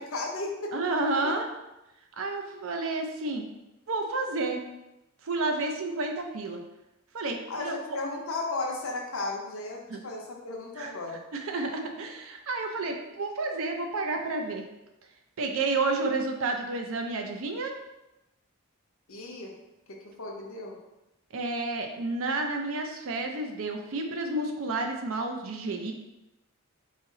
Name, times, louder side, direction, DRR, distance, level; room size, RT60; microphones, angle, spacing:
voice 1, 0.0-0.7 1.2-1.4 7.5-11.2 19.1-19.5 19.9-20.8, left 2 dB, 70° left, 0 dB, 0.7 m, -35 dB
voice 2, 0.7-1.5 2.2-3.4 3.9-4.6 5.2-6.6 7.1-7.8 9.9-10.0 10.8-10.9 11.3-14.7 15.4-17.7 21.3-25.9, right 3 dB, 65° right, 4 dB, 0.5 m, -30 dB
4.0 x 2.0 x 3.7 m, 0.94 s
head